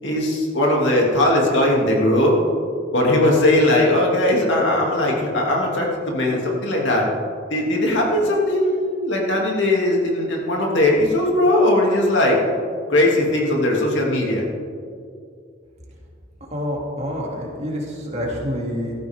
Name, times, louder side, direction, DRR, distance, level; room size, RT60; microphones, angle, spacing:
voice 1, 0.0-2.3 2.9-7.1 7.5-12.4 12.9-14.4, left 1 dB, 80° left, -2 dB, 2.7 m, -19 dB
voice 2, 16.5-18.9, equal, 35° right, -2 dB, 2.7 m, -27 dB
15.0 x 14.0 x 3.7 m, 2.3 s
head